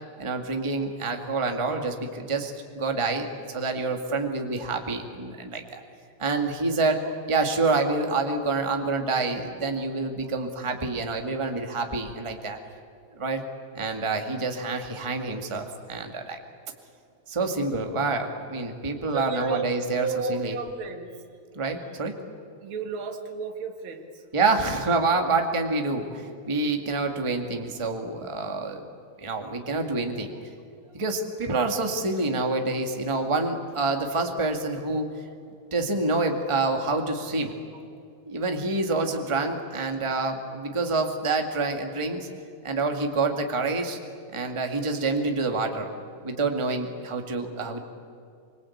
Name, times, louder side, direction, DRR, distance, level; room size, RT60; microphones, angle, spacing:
voice 1, 0.2-5.8 6.2-7.0 7.3-12.6 13.1-13.4 13.7-16.4 17.3-20.6 21.5-22.1 24.3-28.8 29.2-30.3 30.9-35.1 35.7-37.5 38.3-42.3 42.6-44.0 44.3-45.9 46.2-47.8, right 3 dB, 10° right, 4 dB, 1.7 m, -27 dB
voice 2, 19.1-19.7 20.0-21.1 22.6-24.2 26.1-26.2 26.9-27.0, right 5 dB, 45° right, 4 dB, 2.6 m, -33 dB
25.0 x 25.0 x 8.6 m, 2.4 s
omnidirectional pair, 3.3 m